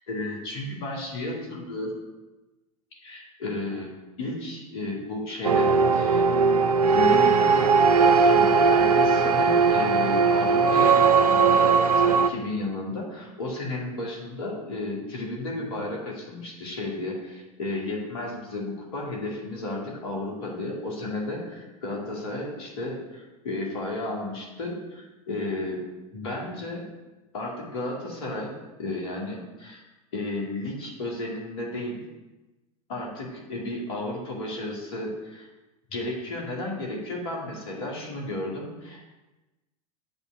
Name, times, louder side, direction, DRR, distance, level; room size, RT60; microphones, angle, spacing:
voice 1, 0.1-2.0 3.0-3.9 4.2-6.3 6.9-21.4 21.8-25.8 26.1-26.8 27.3-28.5 28.8-29.8 30.1-32.0 32.9-35.5 35.9-39.1, left 2 dB, 65° left, -1 dB, 2.2 m, -33 dB
sound 1, 5.4-12.3, right 5 dB, 90° right, 0.5 m, -19 dB
7.9 x 3.6 x 5.8 m, 1.1 s
hypercardioid pair, 80°, 19 cm